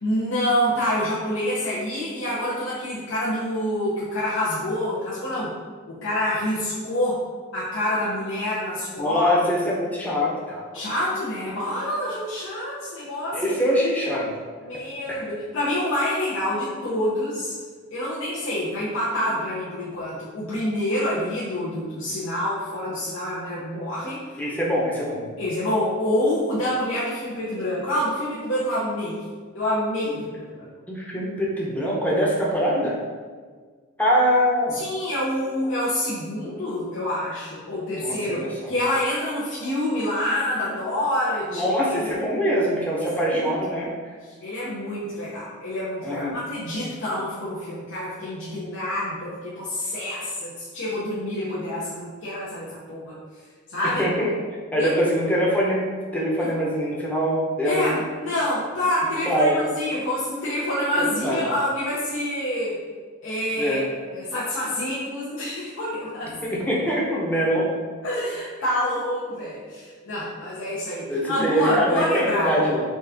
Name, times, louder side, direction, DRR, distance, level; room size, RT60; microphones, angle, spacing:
voice 1, 0.0-5.5 5.9-7.2 7.5-9.3 10.7-13.5 14.6-17.5 17.9-24.4 25.4-29.2 29.5-30.7 34.7-42.1 43.2-43.5 44.4-53.2 53.7-54.1 54.8-54.9 56.4-56.5 57.6-59.5 59.7-62.8 63.2-63.8 64.1-66.3 68.0-72.5, left 1 dB, 65° left, -9 dB, 0.9 m, -27 dB
voice 2, 9.0-10.7 13.3-14.3 14.7-14.8 15.1-15.3 24.4-25.3 30.9-33.0 34.0-34.8 38.0-38.7 41.5-43.9 46.0-46.4 53.8-54.3 54.7-55.9 56.1-58.0 59.2-59.7 61.0-61.4 63.5-63.9 66.4-67.7 71.1-72.8, equal, 5° left, -5 dB, 0.8 m, -23 dB
4.1 x 3.5 x 3.5 m, 1.5 s
head